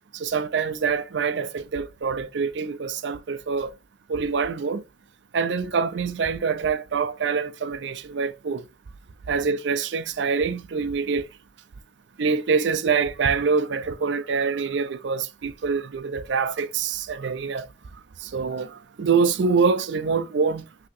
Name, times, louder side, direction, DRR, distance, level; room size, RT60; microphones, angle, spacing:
voice 1, 0.1-3.7 4.1-4.8 5.3-8.6 9.3-11.2 12.2-17.7 18.2-20.6, right 5 dB, 65° right, 0.4 m, -25 dB
5.9 x 2.8 x 2.5 m
head